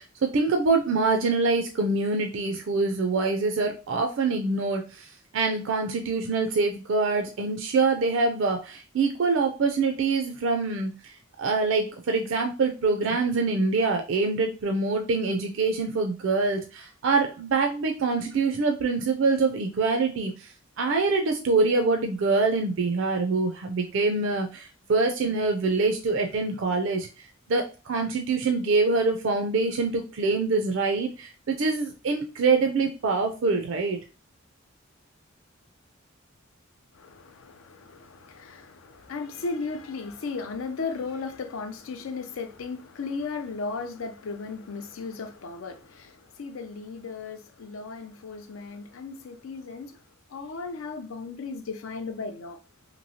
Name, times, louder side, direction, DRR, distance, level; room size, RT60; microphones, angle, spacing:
voice 1, 0.0-20.5 20.8-34.0, right 3 dB, 65° right, 0.4 m, -25 dB
voice 2, 36.9-50.0 50.3-52.6, left 4 dB, 80° left, 0.5 m, -36 dB
3.0 x 2.7 x 2.7 m
head